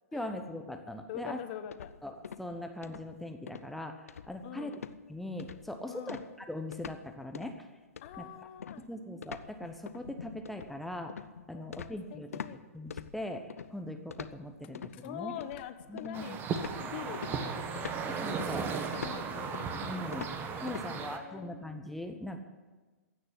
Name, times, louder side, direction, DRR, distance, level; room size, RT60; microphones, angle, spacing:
voice 1, 0.1-1.4 2.0-4.8 5.1-7.7 8.2-8.3 8.9-11.2 11.5-12.4 12.7-15.3 15.9-16.4 18.0-18.8 19.8-20.3 20.6-22.4, left 1 dB, ahead, 5 dB, 1.0 m, -40 dB
voice 2, 1.1-1.9 4.4-4.8 5.9-6.2 8.0-8.9 11.5-12.6 14.9-16.4 16.8-17.9 18.9-19.6 20.8-21.7, left 11 dB, 45° left, 10 dB, 1.1 m, -44 dB
sound 1, 1.7-2.5 2.8-3.1 3.5-3.7 4.1-4.5 4.7-5.0 5.4-5.7 6.1-7.0 7.3-7.6 8.0-12.6 12.9-13.7 14.1-15.0 15.4-16.2 16.6-20.9, left 7 dB, 75° left, 0.6 m, -44 dB
sound 2, 16.1-21.2, right 6 dB, 25° right, 1.3 m, -36 dB
16.0 x 6.6 x 9.9 m, 1.3 s
figure-of-eight pair, 120°, 8 cm